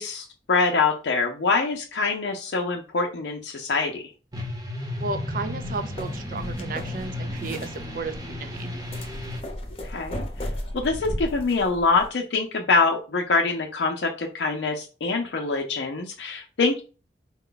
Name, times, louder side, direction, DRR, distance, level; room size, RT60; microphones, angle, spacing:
voice 1, 0.0-4.0 9.8-10.2 10.7-16.8, left 4 dB, 85° left, 1 dB, 0.5 m, -24 dB
sound 1, 4.3-9.4, left 1 dB, 20° right, 0.8 m, -33 dB
voice 2, 5.0-8.7, right 3 dB, 50° right, 8 dB, 0.5 m, -33 dB
sound 2, 5.5-12.1, left 1 dB, 30° left, 0.8 m, -36 dB
4.3 x 2.2 x 3.8 m, 0.35 s
head